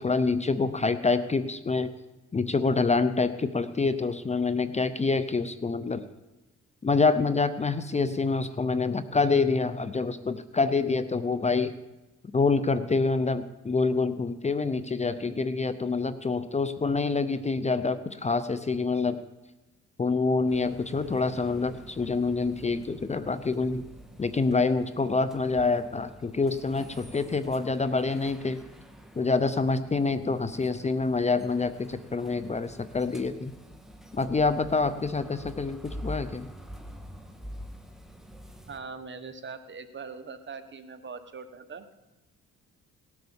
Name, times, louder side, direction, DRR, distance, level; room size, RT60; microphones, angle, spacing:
voice 1, 0.0-1.9 2.3-6.0 6.8-11.8 12.3-19.2 20.0-23.8 24.2-28.6 29.2-33.5 34.1-36.5, left 4 dB, 20° left, 12 dB, 0.7 m, -26 dB
sound 1, 20.5-38.8, equal, ahead, 1.7 m, -46 dB
voice 2, 38.7-41.9, right 5 dB, 40° right, 9 dB, 1.3 m, -41 dB
18.0 x 7.9 x 7.2 m, 1.0 s
cardioid pair, 90°, 30 cm